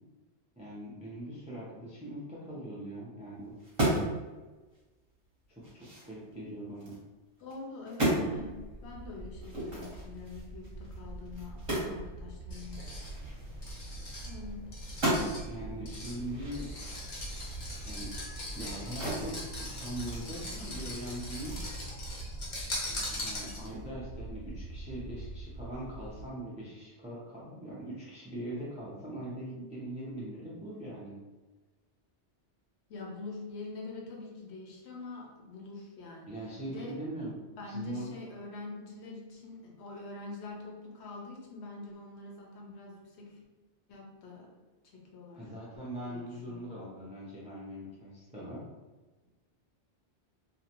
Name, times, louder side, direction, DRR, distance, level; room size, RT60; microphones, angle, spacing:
voice 1, 0.6-3.6 5.5-7.0 15.5-16.7 17.8-18.1 18.5-21.6 22.9-31.2 36.3-37.3 37.7-38.1 45.3-48.6, right 1 dB, 10° right, -7 dB, 0.3 m, -41 dB
sound 1, 3.6-4.2 4.7-4.8 5.3-7.0 7.4-7.6 7.9-8.3 9.4-12.0 12.3-12.4 12.7-14.5 14.8-15.5 16.0-19.3 19.6-21.6, right 1 dB, 35° right, 0.7 m, -35 dB
voice 2, 7.4-11.6 11.8-12.8 14.3-14.6 32.9-36.3 36.7-36.9 37.5-43.4 43.9-44.5 44.9-45.5 46.1-46.6, left 3 dB, 70° left, -1 dB, 0.9 m, -44 dB
sound 2, 8.3-26.3, right 1 dB, 90° right, 0.9 m, -44 dB
sound 3, 12.5-23.9, left 1 dB, 45° left, 0.7 m, -42 dB
2.5 x 2.1 x 2.8 m, 1.2 s
omnidirectional pair, 1.2 m